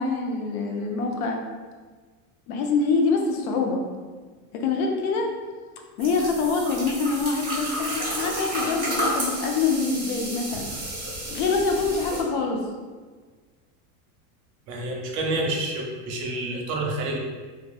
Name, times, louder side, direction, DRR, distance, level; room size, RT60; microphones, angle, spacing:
voice 1, 0.0-1.4 2.5-3.8 4.5-5.3 6.0-10.7 11.3-12.6, left 4 dB, 65° left, 2 dB, 0.6 m, -25 dB
sound 1, 6.0-12.2, right 1 dB, 20° right, 0.8 m, -31 dB
voice 2, 14.7-17.2, right 2 dB, 80° right, -1 dB, 0.7 m, -28 dB
2.4 x 2.4 x 2.3 m, 1.5 s
supercardioid pair, 140°, 47 cm